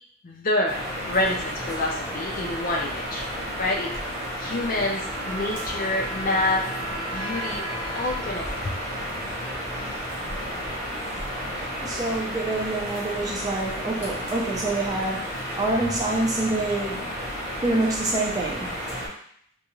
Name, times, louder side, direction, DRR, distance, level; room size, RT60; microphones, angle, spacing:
voice 1, 0.2-0.8 1.1-3.2 3.6-3.9 4.4-6.6 7.1-7.6 7.9-8.7, left 2 dB, 40° left, 0 dB, 0.4 m, -27 dB
sound 1, 0.6-19.1, equal, 10° left, 0.9 m, -32 dB
Wind instrument woodwind instrument, 4.7-10.2, right 1 dB, 80° right, 0.5 m, -39 dB
voice 2, 11.8-17.1 17.6-18.7, right 2 dB, 15° right, -2 dB, 0.5 m, -26 dB
2.4 x 2.3 x 3.0 m, 0.64 s
head